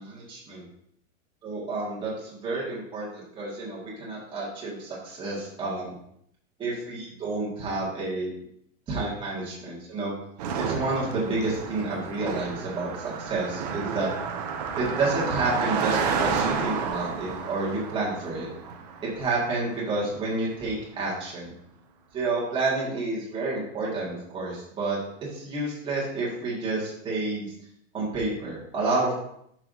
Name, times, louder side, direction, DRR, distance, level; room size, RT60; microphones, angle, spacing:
voice 1, 0.0-0.6 1.4-5.9 6.6-8.3 8.9-10.1 10.6-14.1 14.7-18.5 19.2-21.5 22.1-25.0 25.3-27.5 27.9-29.1, right 3 dB, 10° right, -6 dB, 1.8 m, -30 dB
Car passing by, 10.4-20.0, right 6 dB, 30° right, 0.6 m, -31 dB
11.0 x 6.0 x 2.7 m, 0.71 s
supercardioid pair, 175°, 40 cm